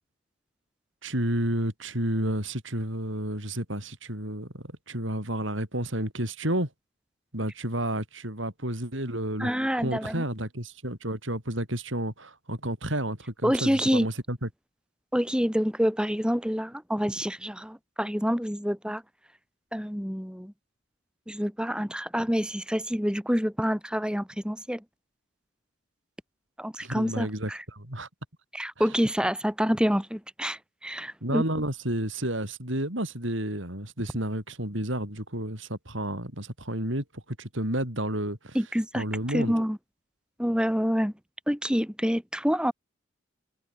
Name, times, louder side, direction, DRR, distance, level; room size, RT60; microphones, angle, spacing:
voice 1, 1.0-6.7 7.3-9.5 9.8-14.5 26.8-28.1 31.2-38.6 38.9-39.5, right 1 dB, 65° right, 7.9 m, -31 dB
voice 2, 9.4-10.2 13.4-14.1 15.1-19.0 19.7-20.5 21.3-24.8 26.6-27.6 28.5-31.4 38.5-39.8 40.4-41.1 41.5-42.7, equal, 5° right, 6.9 m, -27 dB
head